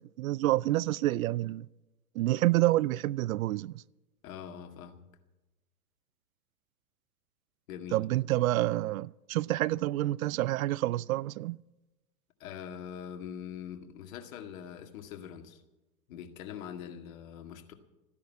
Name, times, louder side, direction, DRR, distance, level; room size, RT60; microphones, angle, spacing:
voice 1, 0.0-1.7 2.2-3.8 7.9-11.6, right 16 dB, 65° right, 0.5 m, -28 dB
voice 2, 4.2-5.0 7.7-8.0 12.4-15.6 16.1-17.7, left 8 dB, 60° left, 2.1 m, -43 dB
14.5 x 10.5 x 8.3 m
hypercardioid pair, 105°, 45 cm